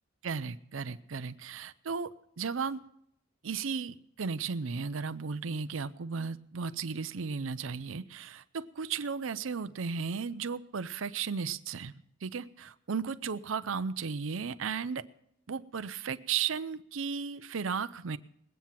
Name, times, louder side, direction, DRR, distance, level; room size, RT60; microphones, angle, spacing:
voice 1, 0.2-2.9 3.4-11.9 12.2-15.1 15.5-18.2, right 5 dB, 70° right, 12 dB, 0.6 m, -35 dB
20.0 x 9.3 x 5.8 m, 0.75 s
head